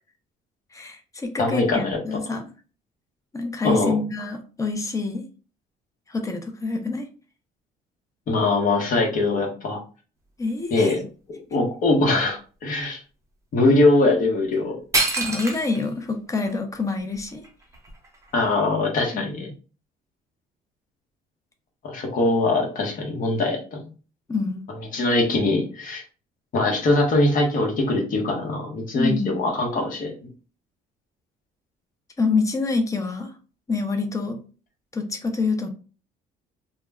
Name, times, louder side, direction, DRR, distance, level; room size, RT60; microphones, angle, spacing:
voice 1, 0.7-2.4 3.3-5.3 6.1-7.1 10.4-10.9 15.2-17.4 19.1-19.2 24.3-24.7 28.9-29.4 32.2-33.3 33.7-34.4 34.9-35.7, left 3 dB, 20° left, 5 dB, 0.5 m, -26 dB
voice 2, 1.4-2.0 3.6-4.0 8.3-9.8 10.7-11.0 11.5-13.0 13.5-14.8 18.3-19.5 21.8-23.8 24.9-26.0 26.5-30.3, left 2 dB, 55° left, 1 dB, 0.9 m, -22 dB
sound 1, 14.5-14.6 14.9-15.9 16.5-16.6 17.1-18.5, right 2 dB, 15° right, 0.7 m, -26 dB
2.2 x 2.0 x 3.4 m, 0.36 s
cardioid pair, 110°, 17 cm